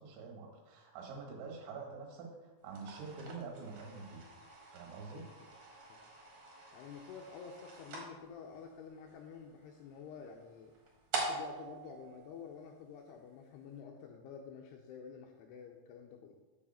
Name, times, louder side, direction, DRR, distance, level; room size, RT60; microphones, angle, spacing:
voice 1, 0.0-4.3 4.7-5.3, right 4 dB, 80° right, 1 dB, 3.8 m, -46 dB
sound 1, 2.6-13.0, right 3 dB, 60° right, 2.1 m, -46 dB
voice 2, 5.1-5.5 5.9-6.0 6.7-10.8 11.1-16.4, left 6 dB, 80° left, 2 dB, 2.4 m, -50 dB
7.1 x 6.9 x 4.2 m, 1.2 s
omnidirectional pair, 5.3 m